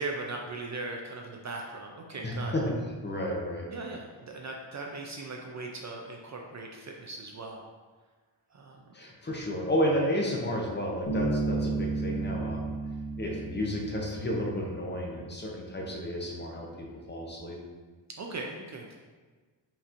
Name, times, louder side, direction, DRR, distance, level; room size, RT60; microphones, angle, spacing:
voice 1, 0.0-2.5 3.7-7.6 8.5-8.8 18.2-18.9, right 3 dB, 40° right, 0 dB, 0.4 m, -38 dB
voice 2, 2.2-2.7 3.0-3.7 8.9-12.8 13.2-16.7 17.1-17.6, equal, 25° left, -2 dB, 0.7 m, -31 dB
Bass guitar, 11.1-14.8, right 3 dB, 60° left, 1.1 m, -32 dB
5.6 x 2.9 x 2.5 m, 1.4 s
wide cardioid pair, 120°, 45 cm